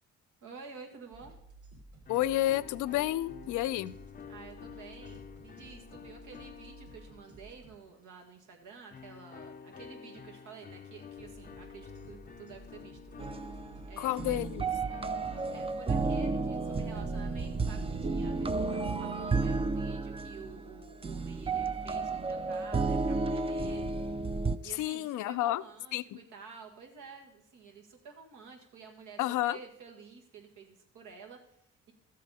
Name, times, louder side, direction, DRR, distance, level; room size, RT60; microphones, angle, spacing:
voice 1, 0.4-1.3 4.3-13.0 13.8-14.4 15.5-23.9 24.6-31.9, right 5 dB, 80° right, 2 dB, 1.9 m, -50 dB
sound 1, 1.1-7.8 11.2-19.0, right 2 dB, 50° right, 2.5 m, -54 dB
sound 2, 2.0-7.9 8.9-16.3, left 7 dB, 30° left, 0.5 m, -50 dB
voice 2, 2.1-3.9 14.0-14.7 24.8-25.6 25.9-26.0 29.2-29.6, left 14 dB, 80° left, 16 dB, 0.5 m, -30 dB
sound 3, 13.2-24.6, right 3 dB, 20° right, 0.5 m, -32 dB
13.0 x 7.5 x 4.1 m, 0.75 s
cardioid pair, 90°, 30 cm